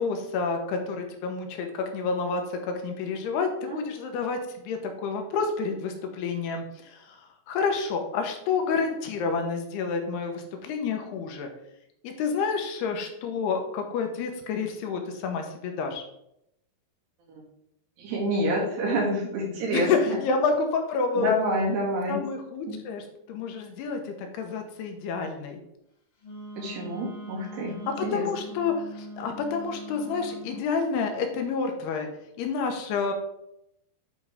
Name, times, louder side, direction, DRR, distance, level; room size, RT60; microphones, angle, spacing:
voice 1, 0.0-11.5 12.0-16.0 19.7-21.3 22.1-25.6 28.0-32.1 32.4-33.1, left 5 dB, 80° left, 4 dB, 3.0 m, -29 dB
voice 2, 18.0-20.2 21.2-22.2 22.7-22.8 26.6-27.7 28.0-28.3, equal, 80° right, -3 dB, 4.1 m, -27 dB
Wind instrument woodwind instrument, 26.2-30.6, left 1 dB, 55° left, 1.5 m, -42 dB
9.6 x 4.7 x 3.6 m, 0.78 s
omnidirectional pair, 4.8 m